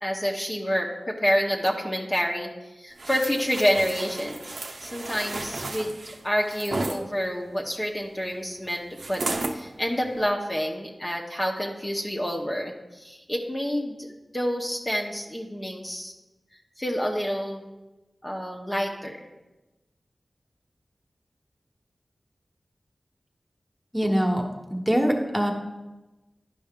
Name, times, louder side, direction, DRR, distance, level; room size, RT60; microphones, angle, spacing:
voice 1, 0.0-2.5 2.7-4.4 4.8-9.2 9.5-16.1 16.8-17.6 18.2-19.2, equal, 25° left, -1 dB, 1.0 m, -28 dB
sound 1, 3.0-7.0 9.0-9.6 10.1-10.3, right 2 dB, 75° right, 0.7 m, -33 dB
voice 2, 23.9-24.4 24.7-25.5, equal, 10° right, 2 dB, 1.3 m, -23 dB
11.0 x 5.3 x 3.7 m, 1.1 s
cardioid pair, 50°, 0 cm